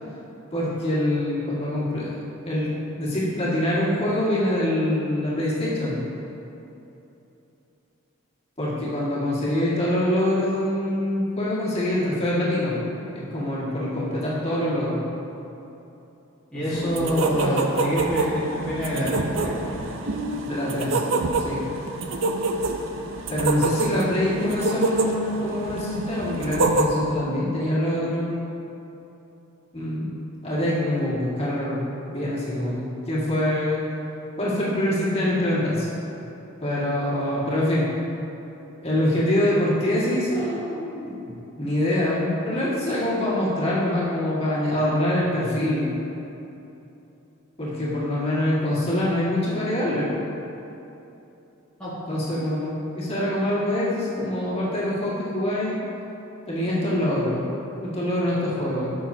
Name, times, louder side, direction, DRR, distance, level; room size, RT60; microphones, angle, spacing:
voice 1, 0.5-2.1 2.5-2.7 2.9-6.0 8.6-12.9 13.1-15.0 16.5-17.5 20.2-21.0 21.4-21.6 23.3-28.3 29.7-30.1 30.4-33.8 34.4-35.9 36.6-37.9 38.8-41.3 41.6-45.9 47.6-50.1 52.1-55.8 56.5-57.4 57.8-59.0, left 1 dB, 25° left, -8 dB, 1.8 m, -25 dB
voice 2, 16.5-19.5 51.8-52.0, equal, 5° left, -12 dB, 1.5 m, -26 dB
sound 1, 16.7-26.9, right 2 dB, 65° right, 0.6 m, -26 dB
13.5 x 6.2 x 2.8 m, 3.0 s
head